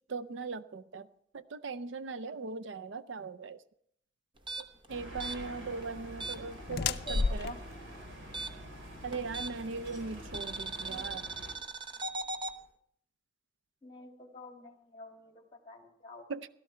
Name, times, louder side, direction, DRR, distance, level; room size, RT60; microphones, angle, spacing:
voice 1, 0.1-1.1 1.3-3.6 4.6-7.6 9.0-11.3 16.3-16.5, right 4 dB, 70° right, 13 dB, 0.5 m, -39 dB
sound 1, 4.4-7.5 7.7-9.8 10.3-12.6, right 3 dB, 25° right, 0.8 m, -39 dB
sound 2, 4.9-11.5, equal, 85° right, 4.3 m, -47 dB
sound 3, 5.2-11.3, left 4 dB, 55° left, 0.5 m, -37 dB
voice 2, 6.8-7.6 10.8-11.2 13.8-16.3, left 3 dB, 25° left, 2 dB, 2.6 m, -48 dB
16.5 x 13.0 x 4.4 m, 0.69 s
head